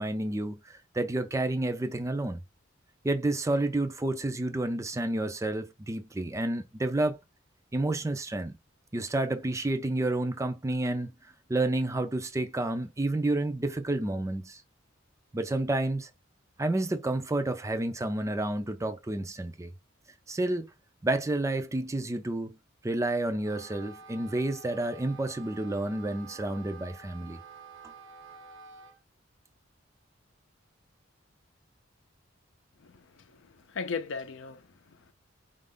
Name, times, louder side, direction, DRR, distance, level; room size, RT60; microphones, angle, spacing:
voice 1, 0.0-2.4 3.0-7.2 7.7-8.6 8.9-11.1 11.5-14.6 15.3-16.1 16.6-19.7 20.3-20.7 21.0-22.6 22.8-27.4, right 2 dB, 15° right, 0.4 m, -30 dB
Wind instrument woodwind instrument, 23.3-29.0, right 5 dB, 80° right, 0.7 m, -50 dB
voice 2, 32.8-35.1, left 5 dB, 70° left, 0.6 m, -38 dB
4.2 x 2.5 x 3.6 m
head